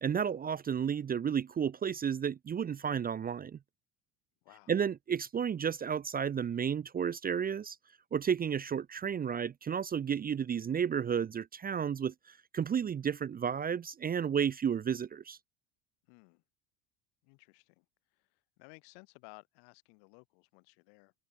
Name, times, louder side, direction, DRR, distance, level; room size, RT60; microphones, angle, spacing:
voice 1, 0.0-3.6 4.7-7.8 8.1-12.1 12.5-15.4, right 7 dB, 20° right, 0.6 m, -32 dB
voice 2, 16.1-16.4 17.2-17.9 18.1-21.1, left 40 dB or more, 80° left, 5.9 m, -57 dB
open air
cardioid pair, 130°, 41 cm